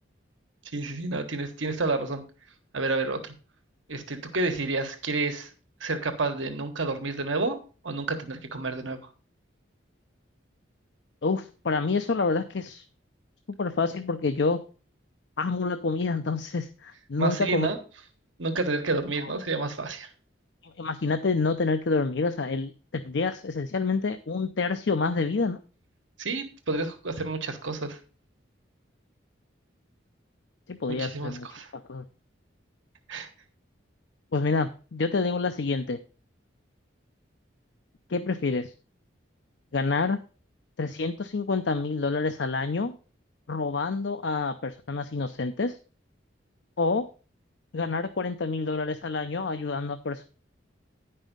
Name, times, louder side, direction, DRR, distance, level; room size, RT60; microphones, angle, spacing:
voice 1, 0.7-2.2 2.7-3.3 3.9-5.5 5.8-7.6 7.8-9.0 17.2-17.8 18.4-20.1 26.2-28.0 31.0-31.7 33.1-33.3, right 3 dB, 80° right, 6 dB, 1.3 m, -29 dB
voice 2, 11.2-12.8 13.6-14.6 15.4-17.7 20.6-25.6 30.7-31.5 31.7-32.0 34.3-36.0 38.1-38.7 39.7-40.2 40.8-43.0 43.5-45.8 46.8-47.1 47.7-50.2, left 4 dB, 65° left, 9 dB, 0.6 m, -28 dB
10.0 x 5.5 x 5.3 m, 0.36 s
head